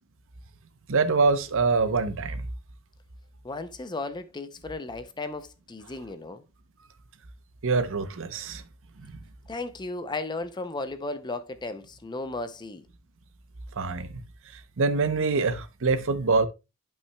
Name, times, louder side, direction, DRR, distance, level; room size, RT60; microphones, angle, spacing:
voice 1, 0.9-2.5 7.6-8.6 9.0-9.1 13.8-14.2 14.8-16.5, right 4 dB, 60° right, 0.7 m, -25 dB
voice 2, 3.4-6.4 9.5-12.9, left 2 dB, 20° left, 0.5 m, -35 dB
11.0 x 5.6 x 2.2 m
head